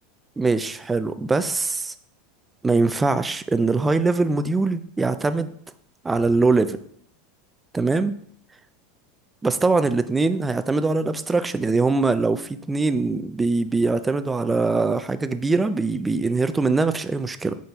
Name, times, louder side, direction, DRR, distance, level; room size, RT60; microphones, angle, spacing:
voice 1, 0.4-1.9 2.6-5.5 6.0-6.8 7.7-8.2 9.4-17.6, right 3 dB, 15° right, 12 dB, 0.4 m, -22 dB
5.5 x 3.9 x 4.4 m, 0.64 s
supercardioid pair, 120°, 0 cm